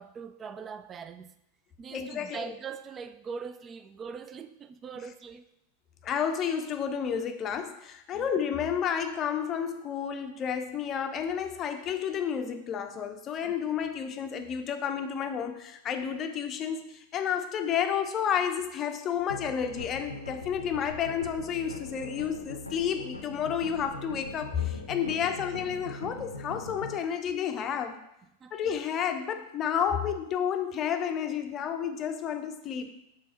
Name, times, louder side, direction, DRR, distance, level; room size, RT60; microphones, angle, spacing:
voice 1, 0.0-1.3 1.8-5.4 8.1-8.3 13.4-13.5 24.9-25.2 28.4-28.5, right 6 dB, 25° right, 12 dB, 0.3 m, -42 dB
voice 2, 1.9-2.5 6.0-28.0 28.5-32.9, left 8 dB, 30° left, 7 dB, 0.5 m, -31 dB
sound 1, 19.3-27.0, left 2 dB, 80° left, 0.6 m, -41 dB
5.3 x 3.4 x 5.5 m, 0.82 s
figure-of-eight pair, 90°, 0 cm